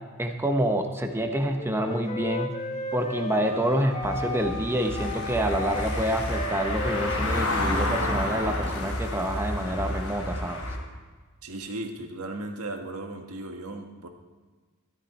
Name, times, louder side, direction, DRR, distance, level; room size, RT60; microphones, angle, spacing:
voice 1, 0.2-2.5 2.9-10.6, equal, 10° right, 4 dB, 1.2 m, -27 dB
Wind instrument woodwind instrument, 1.1-8.6, left 2 dB, 30° left, 1.1 m, -36 dB
Wind instrument woodwind instrument 2, 3.3-8.0, right 11 dB, 30° right, 1.6 m, -44 dB
Car passing by / Engine, 4.0-10.8, left 1 dB, 75° left, 3.3 m, -30 dB
voice 2, 11.4-14.1, right 2 dB, 70° right, 4 dB, 1.6 m, -36 dB
13.5 x 13.5 x 4.3 m, 1.4 s
head